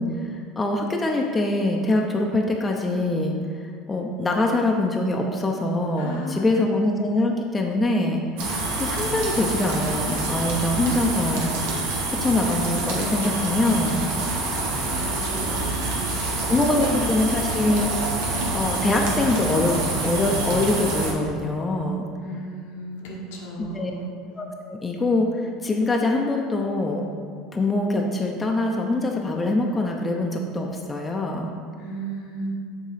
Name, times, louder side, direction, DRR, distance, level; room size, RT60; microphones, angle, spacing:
voice 1, 0.0-8.2 8.8-11.5 12.1-14.1 16.5-17.9 18.5-22.1 23.6-23.9 24.4-27.1 27.5-31.5, left 2 dB, 20° left, 1 dB, 0.7 m, -24 dB
voice 2, 6.0-6.5 14.9-17.5 22.2-24.1 31.8-32.5, equal, 85° left, -2 dB, 1.3 m, -35 dB
sound 1, 8.4-21.1, right 2 dB, 75° right, 1.3 m, -26 dB
6.5 x 3.7 x 5.1 m, 2.1 s
supercardioid pair, 105°, 0 cm